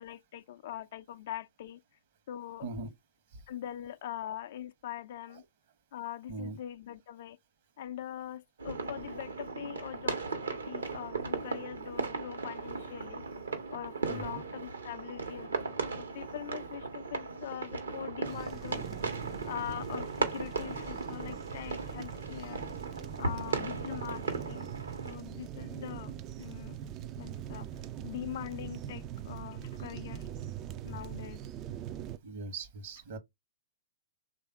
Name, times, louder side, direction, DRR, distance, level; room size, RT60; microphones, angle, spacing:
voice 1, 0.0-1.8 2.3-2.7 3.5-5.4 5.9-7.4 7.8-13.3 13.7-18.9 19.4-22.7 23.2-24.7 25.0-26.8 27.2-27.7 28.0-30.2 30.8-31.4, left 11 dB, 55° left, 0.4 m, -42 dB
voice 2, 2.6-2.9 3.3-3.4 5.3-5.4 6.3-6.6 13.2-13.4 14.1-14.4 30.7-31.0 32.2-33.2, right 3 dB, 55° right, 1.0 m, -41 dB
sound 1, 8.6-25.2, right 4 dB, 75° right, 1.0 m, -37 dB
sound 2, 18.2-32.2, right 10 dB, 30° right, 0.3 m, -42 dB
3.4 x 2.5 x 4.5 m
figure-of-eight pair, 110°, 0 cm